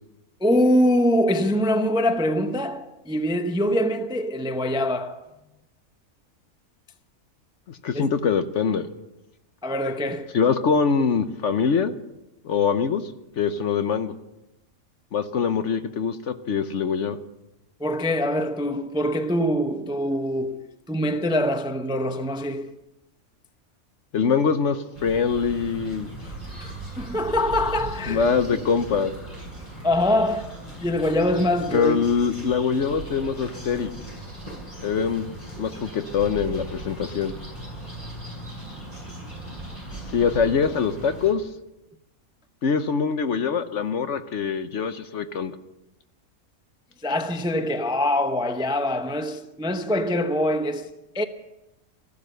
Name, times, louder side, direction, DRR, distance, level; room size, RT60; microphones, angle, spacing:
voice 1, 0.4-5.3 7.9-8.1 9.6-10.3 17.8-22.8 26.2-26.3 26.6-28.2 29.8-30.5 30.8-32.0 47.0-50.9 51.1-51.2, left 1 dB, 5° right, 0.5 m, -24 dB
voice 2, 7.7-8.9 10.3-11.9 12.4-13.0 13.4-14.1 15.1-17.2 24.1-26.1 28.1-29.1 31.7-33.9 34.8-35.3 35.6-37.4 40.1-41.5 42.6-45.5, left 6 dB, 60° left, 1.1 m, -23 dB
sound 1, 24.9-41.3, right 2 dB, 20° left, 7.2 m, -38 dB
15.0 x 12.0 x 6.6 m
omnidirectional pair, 1.5 m